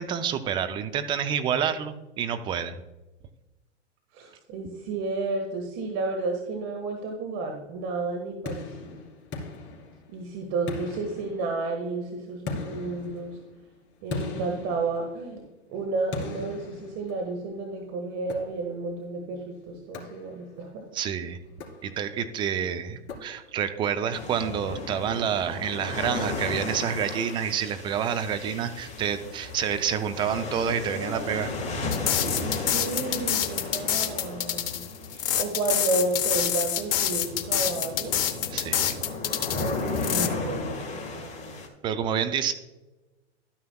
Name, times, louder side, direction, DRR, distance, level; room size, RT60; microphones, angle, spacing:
voice 1, 0.0-2.8 20.9-21.4 21.8-31.5 38.5-39.0 41.8-42.5, right 8 dB, 15° right, 9 dB, 0.4 m, -28 dB
voice 2, 4.1-9.0 10.1-13.4 14.0-15.4 15.7-20.8 31.0-31.4 32.2-32.4 32.7-38.2 39.6-41.6, right 3 dB, 40° right, 2 dB, 1.6 m, -32 dB
sound 1, 8.5-10.3 10.7-11.8 12.5-15.5 16.1-17.5 18.3-18.9 19.9-20.7 21.5-22.3 23.1-23.8, left 3 dB, 35° left, 2.6 m, -39 dB
sound 2, 24.1-41.7, left 3 dB, 20° left, 1.7 m, -35 dB
sound 3, 31.9-40.3, left 10 dB, 50° left, 0.9 m, -27 dB
12.5 x 9.5 x 2.3 m, 1.1 s
hypercardioid pair, 115°, 35 cm